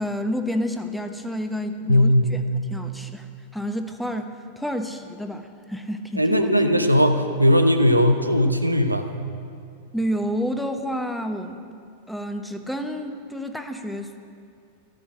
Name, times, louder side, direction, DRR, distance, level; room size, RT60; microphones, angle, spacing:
voice 1, 0.0-2.4 2.7-3.3 3.5-6.5 9.9-11.7 12.1-14.2, equal, ahead, 6 dB, 0.9 m, -29 dB
voice 2, 1.9-2.3 6.2-9.1, equal, 90° right, 6 dB, 0.9 m, -18 dB
13.0 x 9.6 x 8.7 m, 2.4 s
figure-of-eight pair, 90°, 0 cm